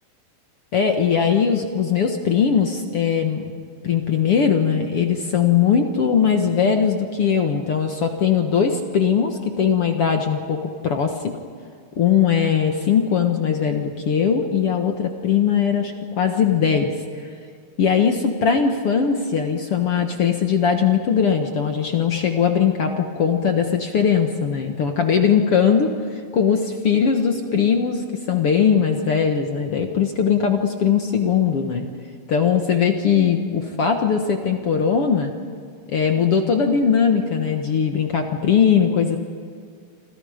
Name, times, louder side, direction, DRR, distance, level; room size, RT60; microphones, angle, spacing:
voice 1, 0.7-3.5 3.8-11.4 12.0-17.3 17.8-31.9 32.3-35.3 35.9-39.2, left 7 dB, 55° left, 4 dB, 1.7 m, -20 dB
29.0 x 26.5 x 5.1 m, 2.2 s
omnidirectional pair, 4.4 m